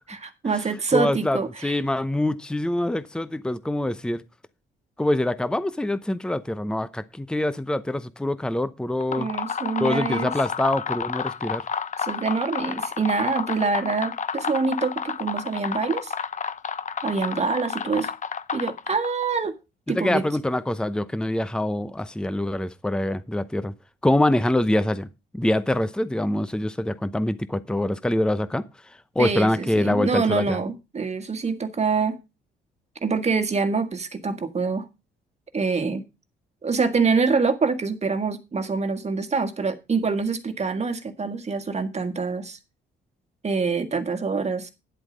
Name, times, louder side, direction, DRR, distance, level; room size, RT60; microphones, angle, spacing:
voice 1, 0.2-1.8 9.1-10.3 12.0-16.1 17.0-18.1 18.5-19.6 19.9-20.2 29.2-32.2 33.0-34.9 35.5-36.0 36.6-42.6 43.4-44.7, right 4 dB, 35° right, 1.8 m, -25 dB
voice 2, 0.9-4.2 5.0-9.3 9.8-11.6 19.9-23.7 24.0-25.1 25.3-28.6 29.1-30.6, left 1 dB, 5° left, 0.8 m, -25 dB
sound 1, 8.9-19.2, left 6 dB, 40° left, 0.8 m, -30 dB
10.0 x 8.0 x 5.1 m
cardioid pair, 90°, 20 cm